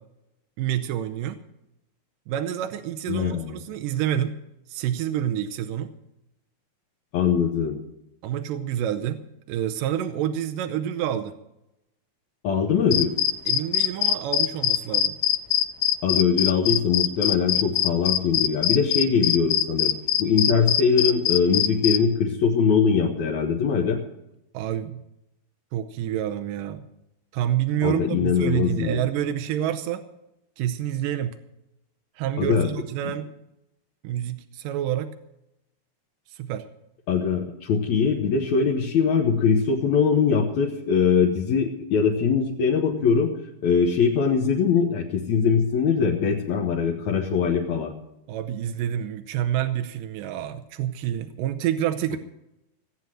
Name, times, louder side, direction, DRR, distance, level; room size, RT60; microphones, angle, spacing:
voice 1, 0.6-1.4 2.3-4.4 4.7-5.9 8.2-9.2 9.5-11.3 13.5-15.2 24.5-25.0 25.7-26.9 27.3-30.0 30.6-31.4 32.2-33.3 34.0-35.1 36.3-36.7 48.3-52.2, right 10 dB, 75° right, 7 dB, 2.0 m, -28 dB
voice 2, 3.1-3.6 7.1-7.8 12.4-13.1 16.0-19.9 20.2-24.0 27.8-29.0 32.4-32.7 37.1-43.3 43.6-47.9, left 6 dB, 65° left, 0 dB, 1.9 m, -22 dB
sound 1, 12.9-22.0, left 12 dB, 85° left, 2.7 m, -22 dB
17.0 x 8.1 x 7.6 m, 0.88 s
omnidirectional pair, 4.6 m